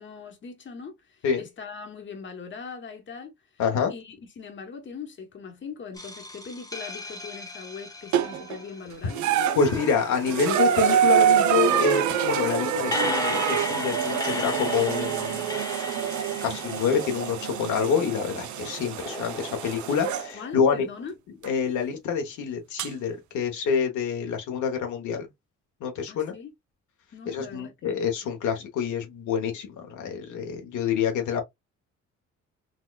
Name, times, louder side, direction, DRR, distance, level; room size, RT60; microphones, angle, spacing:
voice 1, 0.0-3.3 3.9-9.2 20.3-21.1 26.1-26.5 27.1-28.0, left 5 dB, 40° left, 1.0 m, -41 dB
voice 2, 3.6-3.9 9.6-15.5 16.4-20.9 21.4-25.3 25.8-26.3 27.3-31.4, left 6 dB, 75° left, 1.0 m, -27 dB
sound 1, 6.0-9.1 9.6-18.0 19.0-20.5, left 2 dB, 10° left, 0.7 m, -36 dB
sound 2, 8.1-8.6 9.1-20.3 21.4-21.5 22.8-22.9, right 9 dB, 75° right, 0.6 m, -26 dB
4.1 x 2.3 x 2.3 m
cardioid pair, 90°, 30 cm